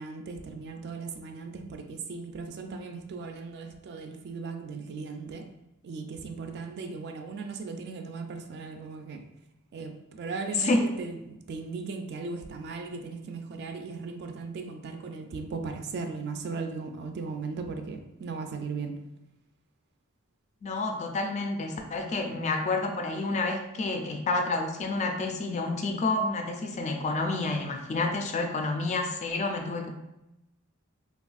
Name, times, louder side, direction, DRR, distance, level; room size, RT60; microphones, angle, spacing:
voice 1, 0.0-5.5 5.8-9.2 9.7-19.0, right 4 dB, 50° right, 6 dB, 0.3 m, -37 dB
voice 2, 20.6-29.9, left 2 dB, 35° left, 4 dB, 0.3 m, -29 dB
3.3 x 2.4 x 2.3 m, 0.90 s
head